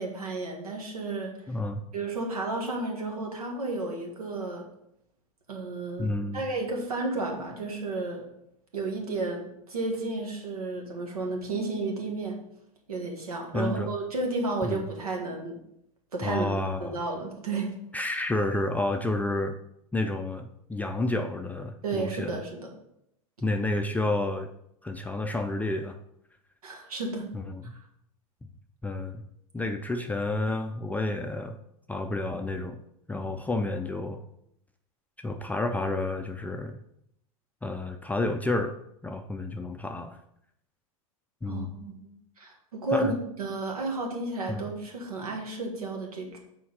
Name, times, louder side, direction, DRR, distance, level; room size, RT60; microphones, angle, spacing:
voice 1, 0.0-1.3 1.9-4.7 5.5-8.2 8.7-12.4 12.9-15.6 16.1-17.7 21.8-22.7 26.6-27.3 41.5-42.0 42.4-46.4, right 3 dB, 85° right, 1 dB, 1.8 m, -32 dB
voice 2, 1.5-1.8 6.0-6.4 13.5-13.9 14.6-14.9 16.2-17.0 17.9-19.6 19.9-22.4 23.4-24.5 24.8-26.0 27.3-27.6 28.8-29.2 29.5-31.6 31.9-32.8 33.1-34.2 35.2-36.8 37.6-38.8 39.0-40.2 41.4-41.7 42.9-43.2 44.5-44.7, left 2 dB, 10° left, 5 dB, 0.4 m, -30 dB
6.2 x 4.4 x 5.5 m, 0.77 s
hypercardioid pair, 100°, 18 cm